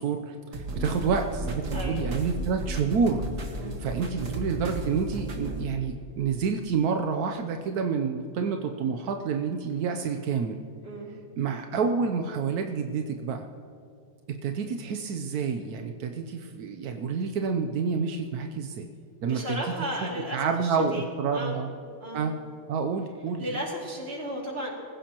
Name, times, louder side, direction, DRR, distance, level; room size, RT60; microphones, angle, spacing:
voice 1, 0.0-10.6 11.4-13.5 14.3-18.9 19.2-19.7 20.3-21.7 22.1-22.3 22.7-23.6, right 5 dB, 70° right, 5 dB, 0.9 m, -29 dB
sound 1, 0.5-5.6, right 2 dB, 50° right, 2.1 m, -34 dB
voice 2, 1.7-2.0 3.6-3.8 10.8-11.1 19.2-21.0 21.3-21.6 22.0-22.3 23.4-24.7, equal, 30° right, -2 dB, 2.8 m, -34 dB
25.0 x 15.5 x 3.0 m, 2.5 s
omnidirectional pair, 2.4 m